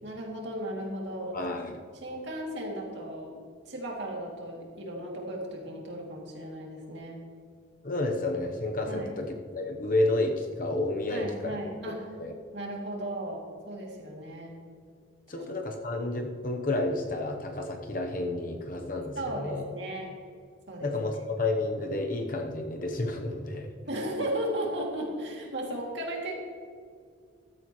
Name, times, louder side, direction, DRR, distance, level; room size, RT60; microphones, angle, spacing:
voice 1, 0.0-1.4 1.9-3.4 3.7-7.2 8.9-9.1 11.1-12.1 12.5-14.5 19.2-20.1 20.7-20.9 23.9-26.4, right 1 dB, 55° right, -1 dB, 2.5 m, -35 dB
voice 2, 1.3-1.8 7.8-11.6 11.9-12.3 15.3-19.7 20.8-23.7, left 2 dB, 40° left, 3 dB, 0.9 m, -30 dB
14.5 x 13.0 x 3.1 m, 2.1 s
head